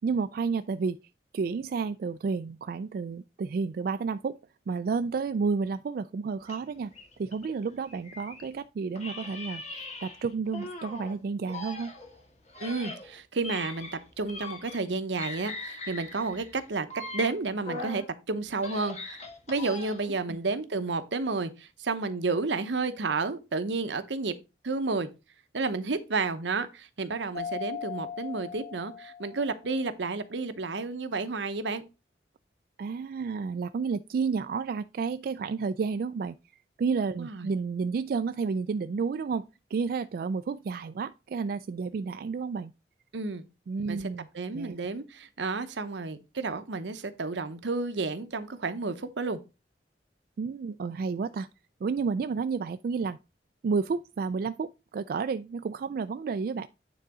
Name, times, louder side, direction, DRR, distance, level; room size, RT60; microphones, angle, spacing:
voice 1, 0.0-1.0 1.3-4.4 4.7-6.9 7.2-11.9 20.3-20.4 32.8-36.4 36.8-39.4 39.7-42.7 43.7-44.3 44.5-44.8 50.4-51.5 51.8-53.2 53.6-56.7, right 5 dB, 55° right, 0.3 m, -31 dB
sound 1, 6.4-8.5 8.9-11.1 11.5-14.9 15.1-18.1 18.5-20.2, left 2 dB, 40° left, 1.7 m, -41 dB
voice 2, 12.6-13.9 14.2-16.9 17.1-19.2 19.5-24.3 24.6-25.1 25.5-31.8 37.2-37.5 43.1-43.4 43.9-44.0 44.3-49.4, right 3 dB, 85° right, 0.8 m, -31 dB
Mallet percussion, 27.3-29.9, left 7 dB, 65° left, 1.8 m, -39 dB
9.2 x 3.8 x 4.8 m
head